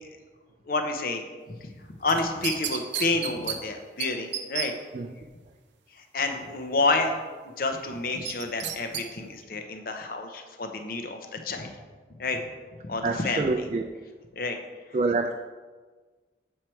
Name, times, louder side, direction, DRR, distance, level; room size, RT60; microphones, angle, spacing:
voice 1, 0.7-1.2 1.5-1.6 2.0-4.7 6.1-7.2 7.6-11.7 12.2-12.4 12.8-13.6 14.3-14.6, left 3 dB, 50° left, 5 dB, 0.7 m, -29 dB
sound 1, 2.1-3.6 4.0-4.1 4.3-4.7 8.2-9.0 9.4-9.5, right 9 dB, 80° right, 0.6 m, -31 dB
voice 2, 13.0-13.9 14.9-15.3, right 3 dB, 40° right, 5 dB, 0.3 m, -26 dB
7.6 x 4.6 x 4.4 m, 1.4 s
head